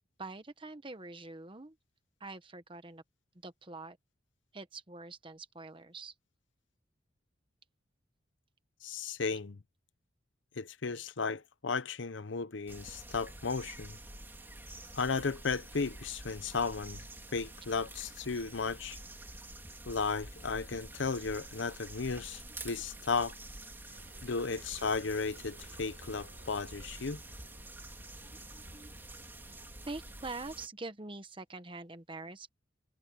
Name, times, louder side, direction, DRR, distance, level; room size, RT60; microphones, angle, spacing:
voice 1, 0.2-1.8 2.2-3.0 3.3-4.0 4.5-6.1 16.5-16.6 22.7-22.9 23.7-23.9 28.2-32.5, right 3 dB, 25° right, 1.2 m, -45 dB
voice 2, 8.8-9.6 10.6-14.0 14.9-17.0 17.3-19.0 19.9-23.3 24.2-27.2, left 4 dB, 75° left, 0.8 m, -35 dB
sound 1, 12.7-30.7, right 2 dB, 10° right, 2.2 m, -48 dB
sound 2, 23.9-30.2, right 1 dB, 60° right, 5.2 m, -59 dB
head